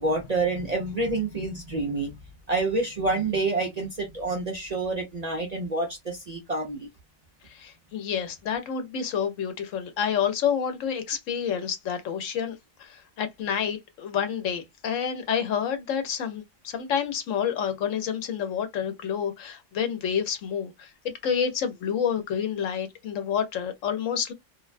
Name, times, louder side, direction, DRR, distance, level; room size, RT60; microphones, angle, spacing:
voice 1, 0.0-2.2 2.5-6.9, right 3 dB, 45° right, 0.6 m, -28 dB
voice 2, 7.4-20.9 21.2-24.3, left 8 dB, 75° left, 1.1 m, -29 dB
2.6 x 2.1 x 2.4 m
omnidirectional pair, 1.3 m